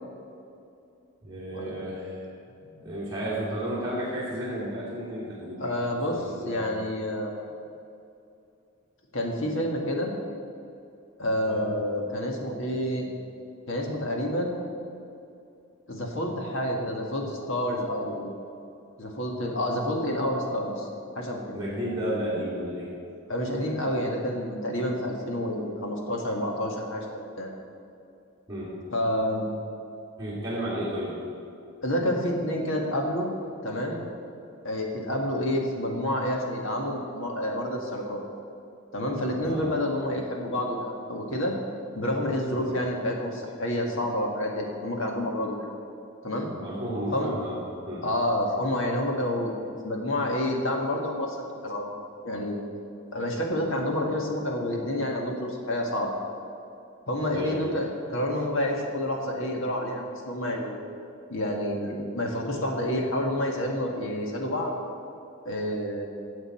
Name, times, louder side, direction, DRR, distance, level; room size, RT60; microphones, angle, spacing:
voice 1, 1.2-2.3 2.6-5.6 6.1-6.8 11.4-11.6 21.5-22.9 28.5-28.7 30.2-31.2 39.4-39.7 42.5-42.7 46.5-47.6 47.8-48.0 57.3-57.5, equal, 15° right, -11 dB, 2.9 m, -32 dB
voice 2, 5.6-7.3 9.1-10.1 11.2-13.1 13.7-14.6 15.9-18.3 19.0-20.9 21.1-21.6 23.3-27.5 28.9-29.5 31.8-33.3 33.6-34.0 34.6-38.2 38.9-41.5 41.9-45.6 46.2-46.5 47.1-47.3 48.0-49.5 49.8-51.9 52.2-52.6 53.1-56.1 57.1-60.8 61.3-64.7 65.4-66.1, left 1 dB, 60° left, 0 dB, 1.7 m, -29 dB
15.0 x 7.9 x 4.4 m, 2.6 s
head